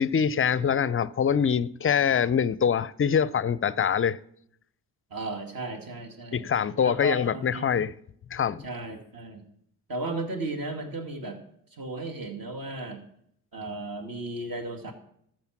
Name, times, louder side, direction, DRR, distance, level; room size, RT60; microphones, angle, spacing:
voice 1, 0.0-4.2 6.3-7.9 8.3-8.6, left 7 dB, 30° left, 0.5 m, -24 dB
voice 2, 5.1-6.5 6.8-7.6 8.6-9.4 9.9-11.4 11.7-13.0 13.5-14.9, right 2 dB, 45° right, 2.3 m, -35 dB
13.5 x 6.5 x 6.0 m
hypercardioid pair, 45°, 46 cm